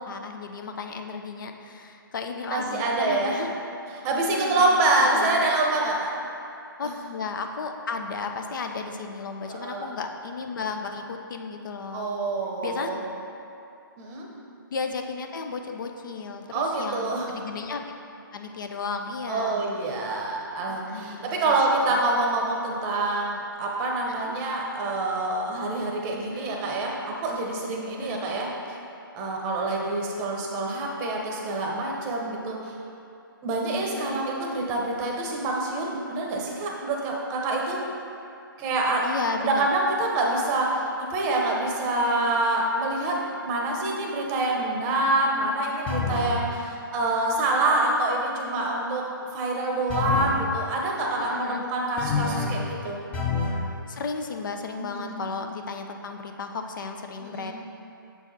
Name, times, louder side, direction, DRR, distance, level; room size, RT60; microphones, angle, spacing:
voice 1, 0.0-3.5 4.3-5.4 6.8-12.1 12.6-12.9 14.7-17.8 18.3-19.6 20.7-21.5 21.8-22.0 24.1-24.3 26.3-26.6 28.0-28.2 34.0-34.2 39.0-39.7 51.2-51.6 53.9-57.5, left 4 dB, 60° left, 5 dB, 0.6 m, -34 dB
voice 2, 2.5-3.4 4.0-6.1 9.5-9.9 11.9-13.0 14.0-14.3 16.5-17.3 19.3-28.5 29.1-32.8 33.4-37.8 38.6-39.1 39.4-49.0 49.3-53.0 54.8-55.2 57.2-57.5, right 2 dB, 20° right, -1 dB, 0.8 m, -26 dB
sound 1, 45.9-46.4 49.9-50.4 52.0-52.6 53.1-53.6, left 4 dB, 10° left, 0.5 m, -27 dB
7.1 x 4.7 x 4.0 m, 2.6 s
hypercardioid pair, 150°, 12 cm